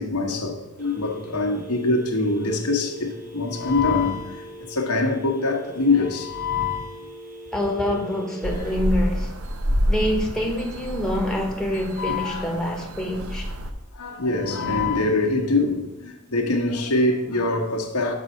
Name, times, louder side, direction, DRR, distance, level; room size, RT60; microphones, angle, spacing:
voice 1, 0.0-7.0 12.0-12.5 13.9-18.1, left 3 dB, 85° left, 1.2 m, -24 dB
Telephone, 0.8-8.8, right 1 dB, 40° right, 1.6 m, -41 dB
voice 2, 7.5-9.3 9.9-13.5, left 1 dB, 5° left, 1.1 m, -26 dB
sound 1, 8.4-13.7, equal, 75° right, 0.8 m, -28 dB
6.7 x 5.5 x 5.4 m
head